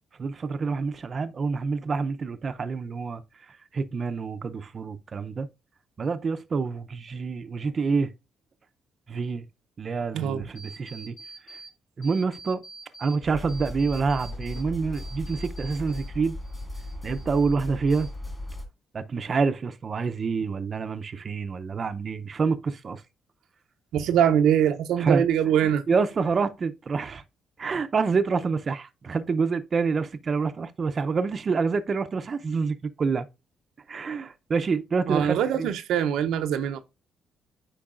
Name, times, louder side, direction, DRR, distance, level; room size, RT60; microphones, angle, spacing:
voice 1, 0.2-3.2 3.7-5.5 6.0-8.1 9.1-9.5 9.8-11.2 12.0-12.6 13.0-16.4 17.0-18.1 18.9-23.0 25.0-25.2 25.6-27.2 27.6-33.3 33.9-35.7, right 4 dB, 40° right, 0.6 m, -27 dB
voice 2, 10.1-10.5 23.9-25.8 35.1-36.8, right 9 dB, 85° right, 0.6 m, -23 dB
sound 1, 10.6-11.7 12.0-13.2 13.5-16.1 16.4-17.6 17.9-18.5, right 3 dB, 70° left, 3.5 m, -46 dB
sound 2, 13.2-18.7, left 1 dB, 15° left, 2.1 m, -37 dB
8.6 x 5.1 x 2.4 m
cardioid pair, 90°, 0 cm